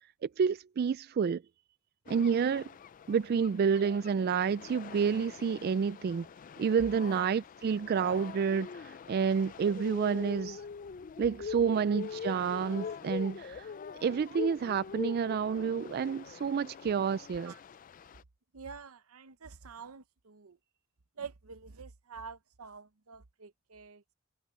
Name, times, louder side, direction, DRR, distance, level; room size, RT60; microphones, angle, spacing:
voice 1, 0.2-1.4 2.1-2.6 3.1-6.3 6.6-10.6 11.2-13.7 14.0-17.5, right 6 dB, 45° right, 0.3 m, -29 dB
sound 1, 2.1-18.2, left 6 dB, 40° left, 0.3 m, -44 dB
voice 2, 18.5-20.6 21.2-24.0, right 5 dB, 85° right, 0.8 m, -47 dB
head